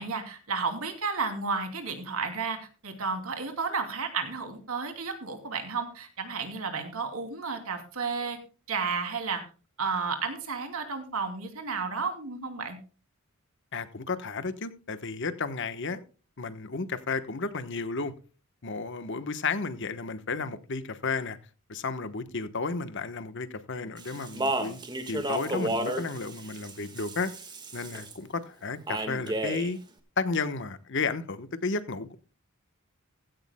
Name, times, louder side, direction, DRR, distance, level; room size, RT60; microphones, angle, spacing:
voice 1, 0.0-8.4 8.7-9.4 9.8-12.8, right 4 dB, 80° right, 2.7 m, -32 dB
voice 2, 13.7-16.0 16.4-18.1 18.6-21.4 21.7-24.8 25.1-27.3 27.7-29.8 30.2-32.1, left 4 dB, 55° left, 1.1 m, -33 dB
Speech, 24.0-28.1 28.9-29.7, right 1 dB, 20° right, 1.6 m, -32 dB
16.0 x 13.5 x 2.2 m
head